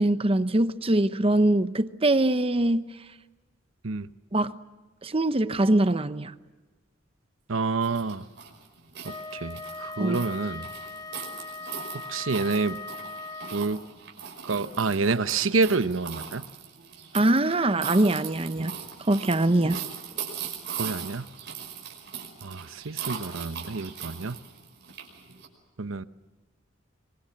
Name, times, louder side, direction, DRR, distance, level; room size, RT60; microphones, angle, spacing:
voice 1, 0.0-2.8 4.3-4.6 5.0-6.3 10.0-10.2 17.1-18.7 19.0-19.8, right 1 dB, 30° right, 0.8 m, -23 dB
voice 2, 7.5-8.3 9.0-10.7 12.1-12.8 13.5-13.8 14.4-16.4 20.8-21.3 22.4-24.4 25.8-26.0, right 4 dB, 85° right, 1.0 m, -28 dB
sound 1, 7.8-25.5, right 7 dB, 60° right, 5.5 m, -39 dB
Wind instrument woodwind instrument, 9.0-13.9, left 3 dB, 20° left, 0.8 m, -39 dB
26.5 x 23.5 x 7.4 m
head